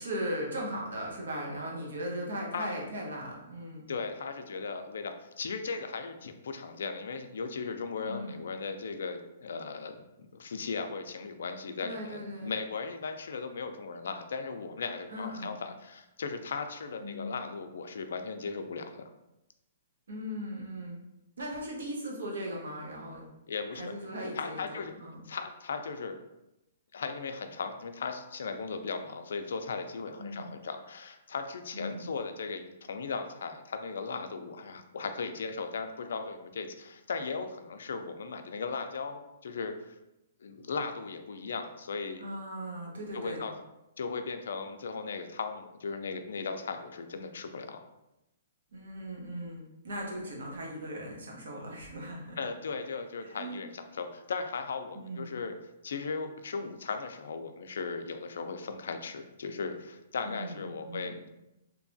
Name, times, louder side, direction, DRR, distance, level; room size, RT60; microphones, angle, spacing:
voice 1, 0.0-3.8 8.0-8.4 11.8-12.6 15.1-15.5 17.0-17.3 20.1-21.0 21.4-23.2 23.7-25.2 30.2-30.5 31.7-32.1 42.2-43.4 48.7-52.4 53.2-53.6 54.9-55.3 60.2-61.2, equal, 90° right, -1 dB, 0.8 m, -38 dB
voice 2, 3.9-10.0 10.3-19.0 23.5-23.9 24.4-24.9 25.3-26.2 26.9-40.0 40.4-42.3 43.1-43.5 44.0-47.8 52.4-55.5 55.8-61.2, left 4 dB, 80° left, 7 dB, 0.3 m, -37 dB
2.7 x 2.2 x 2.6 m, 0.91 s
hypercardioid pair, 155°, 0 cm